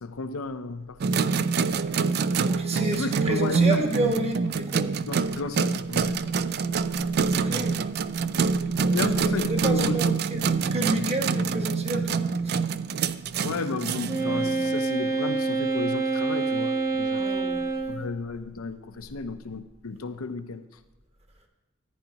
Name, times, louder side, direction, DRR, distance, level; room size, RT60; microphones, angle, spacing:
voice 1, 0.0-1.2 2.8-3.8 5.1-6.2 7.5-7.8 8.8-10.0 13.4-17.2 17.9-20.6, left 4 dB, 75° left, 10 dB, 0.7 m, -33 dB
sound 1, 1.0-14.8, right 5 dB, 50° right, 0.4 m, -26 dB
voice 2, 2.4-4.9 7.2-7.8 9.0-12.5 17.1-17.6, right 1 dB, 30° right, 3 dB, 1.3 m, -30 dB
Wind instrument woodwind instrument, 14.1-18.1, right 3 dB, 15° right, 0.8 m, -26 dB
14.0 x 10.0 x 2.9 m, 1.1 s
head